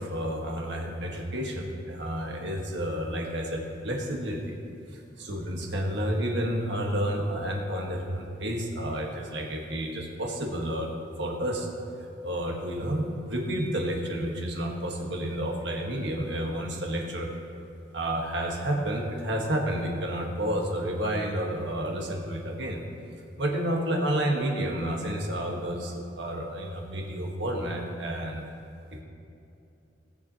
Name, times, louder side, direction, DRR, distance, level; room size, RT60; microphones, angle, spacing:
voice 1, 0.0-4.6 4.9-10.9 11.2-11.7 12.0-17.3 17.9-22.8 23.4-28.4 28.9-29.0, right 1 dB, 65° right, 0 dB, 1.4 m, -30 dB
18.5 x 7.0 x 2.9 m, 2.7 s
head